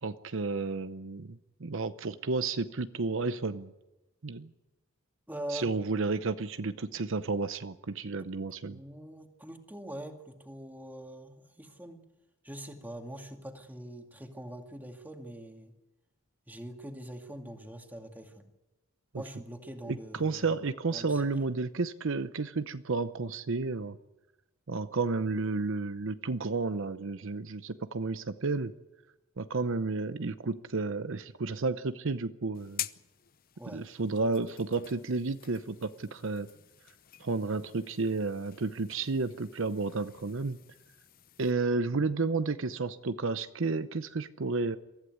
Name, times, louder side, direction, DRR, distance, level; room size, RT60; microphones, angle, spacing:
voice 1, 0.0-3.7 4.2-4.5 5.5-8.8 19.1-19.2 19.9-24.0 24.7-28.7 29.4-32.9 33.7-36.5 37.2-40.6 41.4-44.8, right 3 dB, 65° right, 11 dB, 0.8 m, -32 dB
voice 2, 5.3-5.7 8.7-12.0 12.4-15.7 16.5-18.5 19.1-20.6 20.9-21.3 33.6-33.8, right 1 dB, 10° right, 4 dB, 2.2 m, -43 dB
sound 1, 32.5-41.5, left 12 dB, 45° left, 0.7 m, -47 dB
23.5 x 15.0 x 9.5 m, 1.0 s
head